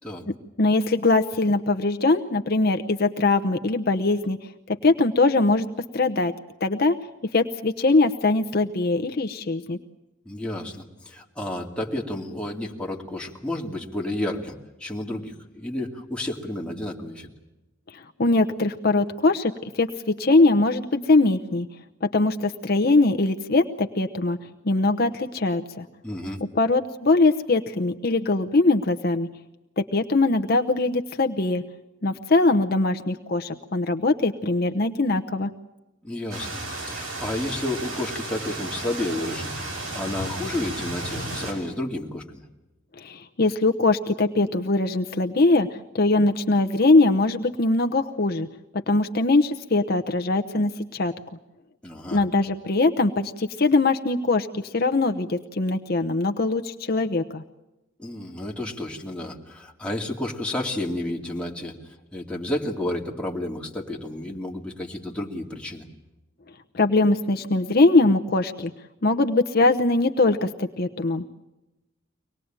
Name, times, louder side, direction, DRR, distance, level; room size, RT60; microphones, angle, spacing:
voice 1, 0.3-4.4 4.7-5.7 5.9-6.3 6.6-7.0 7.3-9.8 17.9-21.7 22.0-24.4 24.6-25.9 26.5-29.3 29.8-31.6 32.0-35.5 43.0-48.5 48.7-51.1 52.1-57.4 66.7-68.7 69.0-71.4, left 2 dB, 50° left, 5 dB, 0.9 m, -22 dB
voice 2, 10.3-17.3 26.0-26.4 36.0-42.4 51.8-52.2 58.0-65.9, left 1 dB, 5° left, -1 dB, 2.5 m, -31 dB
sound 1, 36.3-41.5, right 2 dB, 90° right, 7.6 m, -33 dB
24.5 x 19.5 x 8.9 m, 1.0 s
head